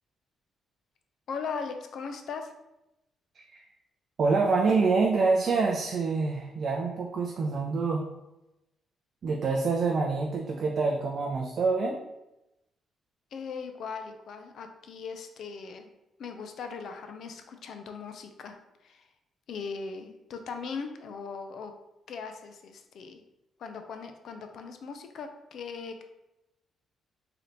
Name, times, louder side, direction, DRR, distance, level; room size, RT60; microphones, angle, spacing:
voice 1, 1.3-2.5 13.3-15.9 16.2-18.6 18.8-19.1 19.5-21.7 22.1-23.2 23.6-26.0, left 5 dB, 65° left, 6 dB, 0.5 m, -39 dB
voice 2, 4.2-8.0 9.2-12.0, right 4 dB, 55° right, 0 dB, 0.5 m, -26 dB
3.3 x 2.8 x 3.9 m, 0.93 s
cardioid pair, 90°, 0 cm